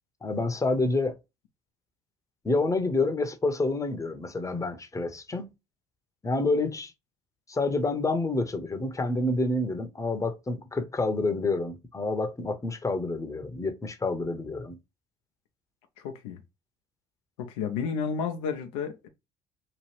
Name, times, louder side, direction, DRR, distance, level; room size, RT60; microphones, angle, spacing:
voice 1, 0.2-1.2 2.4-5.5 6.2-6.9 7.5-14.8, left 2 dB, 20° left, 0.8 m, -28 dB
voice 2, 16.0-16.4 17.4-19.1, left 6 dB, 80° left, 0.6 m, -31 dB
3.0 x 2.4 x 3.1 m
hypercardioid pair, 55°, 16 cm